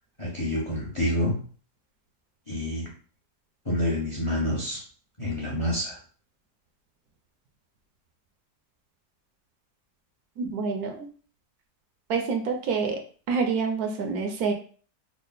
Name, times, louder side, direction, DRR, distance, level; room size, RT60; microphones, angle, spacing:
voice 1, 0.2-1.4 2.5-2.9 3.7-4.8 5.2-6.0, left 1 dB, 25° left, -2 dB, 0.7 m, -27 dB
voice 2, 10.4-11.1 12.1-13.0 13.3-14.5, right 5 dB, 70° right, 3 dB, 1.1 m, -27 dB
3.6 x 2.1 x 3.9 m, 0.41 s
omnidirectional pair, 1.7 m